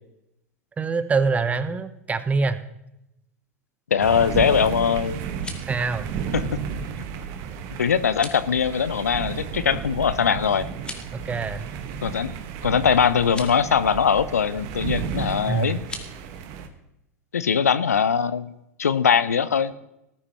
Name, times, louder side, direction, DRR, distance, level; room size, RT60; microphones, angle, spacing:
voice 1, 0.8-2.6 5.7-6.1 11.1-11.7 15.5-15.8, right 4 dB, 15° right, 13 dB, 0.9 m, -25 dB
voice 2, 3.9-5.2 6.3-6.6 7.8-10.7 12.0-12.3 12.6-15.8 17.3-18.5 18.8-19.7, left 7 dB, 70° left, 16 dB, 0.6 m, -21 dB
sound 1, 4.0-16.7, right 7 dB, 45° right, 1.5 m, -33 dB
sound 2, 5.2-5.8 8.1-8.5 10.7-11.2 13.2-13.6 15.8-16.1, left 2 dB, 10° left, 1.9 m, -38 dB
19.5 x 13.5 x 3.1 m, 0.86 s
figure-of-eight pair, 85°, 9 cm